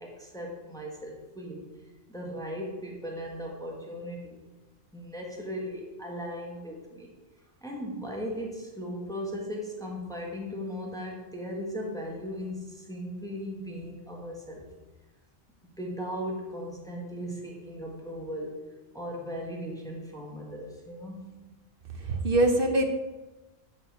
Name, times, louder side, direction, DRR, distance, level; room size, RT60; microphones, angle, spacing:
voice 1, 0.0-1.7 2.1-4.4 4.9-7.1 7.6-14.6 15.6-18.7 18.9-21.3, equal, 5° left, -1 dB, 1.5 m, -37 dB
voice 2, 22.0-22.9, right 1 dB, 50° right, 5 dB, 0.9 m, -23 dB
10.5 x 6.2 x 4.8 m, 1.1 s
omnidirectional pair, 1.3 m